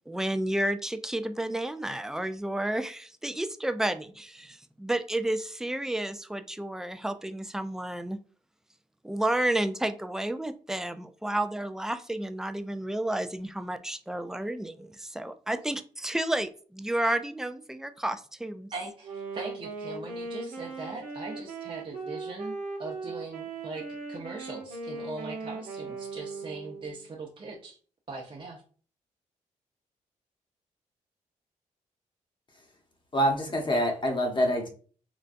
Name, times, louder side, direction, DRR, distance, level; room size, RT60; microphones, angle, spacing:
voice 1, 0.1-8.2 9.0-18.7, right 1 dB, 5° right, 10 dB, 0.3 m, -31 dB
voice 2, 18.7-27.8 28.1-28.6, right 3 dB, 40° right, -2 dB, 0.7 m, -40 dB
Wind instrument woodwind instrument, 19.0-27.1, right 3 dB, 85° right, 0.8 m, -38 dB
voice 3, 33.1-34.7, equal, 35° left, 2 dB, 0.9 m, -26 dB
3.8 x 2.2 x 2.5 m, 0.42 s
cardioid pair, 70°, 14 cm